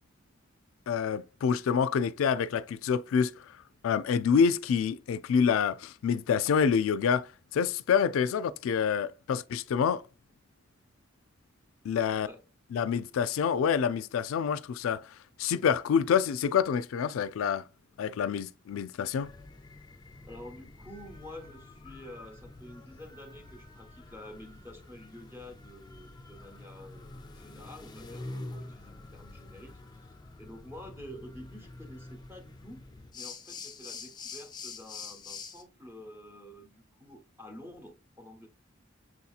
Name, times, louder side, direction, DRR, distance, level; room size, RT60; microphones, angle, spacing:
voice 1, 0.9-3.5 3.8-10.0 11.8-12.3 12.7-17.6 18.0-19.3, left 7 dB, 85° left, 0.3 m, -27 dB
voice 2, 12.1-12.4 20.1-30.1 30.4-32.8 33.1-38.5, left 1 dB, 10° right, 1.0 m, -49 dB
sound 1, 19.2-35.6, left 3 dB, 20° left, 0.5 m, -46 dB
6.1 x 2.8 x 2.3 m
head